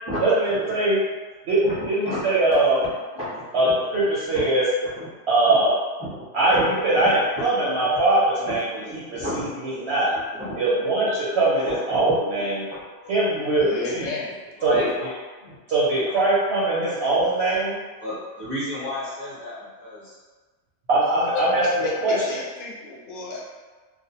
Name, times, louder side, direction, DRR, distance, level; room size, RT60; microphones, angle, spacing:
voice 1, 0.2-1.0 1.5-2.8 3.5-4.6 5.3-5.7 6.3-8.7 9.1-10.1 10.6-12.7 13.1-13.7 13.9-14.0 14.6-14.8 15.7-17.8 20.9-21.6 22.0-22.4, right 2 dB, 65° right, -8 dB, 0.7 m, -21 dB
voice 2, 3.1-4.0 4.3-4.4 4.8-5.1 5.5-5.6 6.0-6.2 6.5-6.6 7.0-7.1 7.3-7.4 8.5-9.5 10.3-10.6 11.0-11.1 11.6-12.1 12.7-12.8 13.5-14.1 14.6-14.9 15.5-15.6 16.0-16.2 18.0-20.2, left 1 dB, 25° left, -13 dB, 0.7 m, -32 dB
voice 3, 13.6-14.3 21.3-23.5, left 3 dB, 55° left, -5 dB, 0.6 m, -32 dB
2.4 x 2.0 x 2.7 m, 1.3 s
omnidirectional pair, 1.4 m